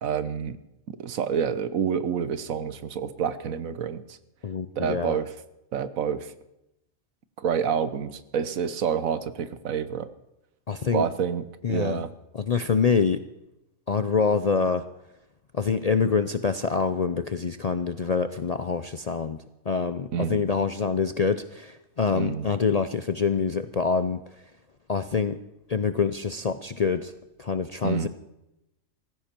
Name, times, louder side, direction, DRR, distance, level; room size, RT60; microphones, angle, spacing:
voice 1, 0.0-0.6 1.0-4.2 4.8-5.3 5.7-6.3 7.4-10.1 10.9-12.1 20.1-20.5 22.1-22.5 27.8-28.1, right 7 dB, 80° right, 13 dB, 1.4 m, -28 dB
voice 2, 4.4-5.2 10.7-11.0 11.6-12.0 12.3-13.2 13.9-14.8 15.5-19.4 19.7-24.2 24.9-25.4 25.7-27.1 27.4-28.1, left 5 dB, 50° left, 11 dB, 0.5 m, -25 dB
18.0 x 15.5 x 4.5 m, 0.89 s
omnidirectional pair, 1.4 m